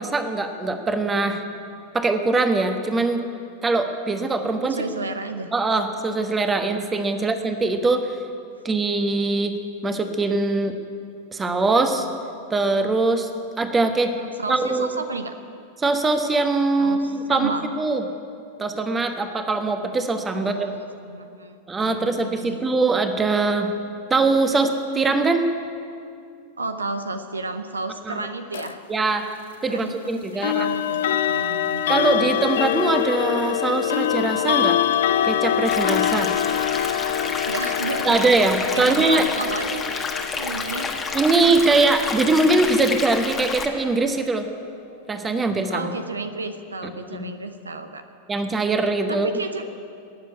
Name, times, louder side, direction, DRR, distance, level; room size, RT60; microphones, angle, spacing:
voice 1, 0.0-1.4 1.9-3.2 3.6-4.8 5.5-8.2 8.6-9.6 9.8-10.7 11.3-12.1 12.5-13.3 13.6-14.1 14.5-14.9 15.8-17.5 17.8-18.0 18.6-20.7 21.7-23.7 24.1-25.5 28.1-28.3 28.9-29.3 29.6-30.7 31.9-34.8 35.2-36.3 38.1-39.2 41.1-44.5 45.1-45.9 47.1-47.3 48.3-49.3, right 3 dB, 15° right, 7 dB, 1.2 m, -22 dB
voice 2, 4.7-5.5 7.2-7.3 14.2-15.3 16.8-17.7 20.3-22.6 26.6-28.8 29.7-32.3 36.4-36.5 37.5-38.2 38.7-40.1 40.4-40.9 45.7-48.0 49.1-49.7, right 3 dB, 75° right, 9 dB, 0.7 m, -32 dB
sound 1, 28.5-28.7 30.4-43.3, left 10 dB, 60° left, 0.6 m, -25 dB
sound 2, 35.6-43.7, left 4 dB, 15° left, 1.4 m, -30 dB
18.5 x 7.5 x 9.9 m, 2.5 s
figure-of-eight pair, 90°, 0 cm